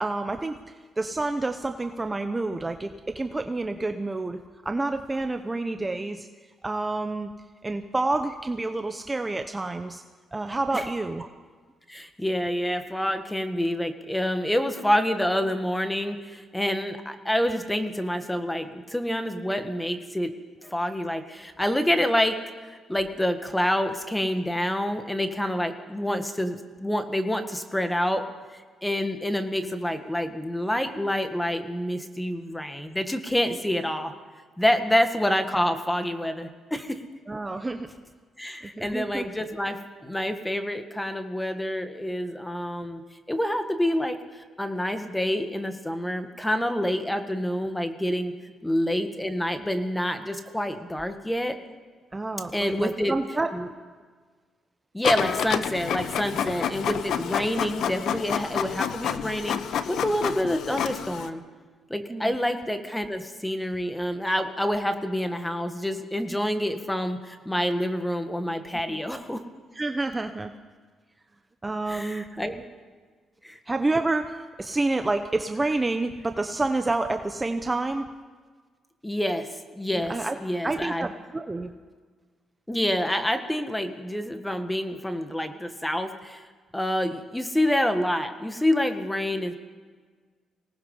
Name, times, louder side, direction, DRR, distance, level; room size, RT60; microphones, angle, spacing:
voice 1, 0.0-4.4 4.6-6.3 6.6-7.3 7.6-10.0 10.3-11.3 37.3-37.9 38.8-39.3 52.1-53.5 62.1-62.3 68.9-69.0 69.7-70.5 71.6-72.2 73.7-78.1 79.9-80.4 80.6-81.7, right 2 dB, 20° right, 7 dB, 1.0 m, -28 dB
voice 2, 11.9-20.3 20.6-22.4 22.7-28.2 28.5-34.1 34.6-37.0 38.4-43.0 43.3-48.3 48.6-51.6 52.5-53.2 53.5-53.7 54.9-61.4 61.9-69.4 71.9-72.6 73.4-73.6 79.0-81.1 82.7-86.5 86.7-89.6, left 1 dB, 10° left, 7 dB, 1.8 m, -27 dB
Printer, 55.0-61.3, left 8 dB, 70° left, 1.0 m, -29 dB
25.0 x 19.0 x 5.6 m, 1.5 s
cardioid pair, 90°, 0 cm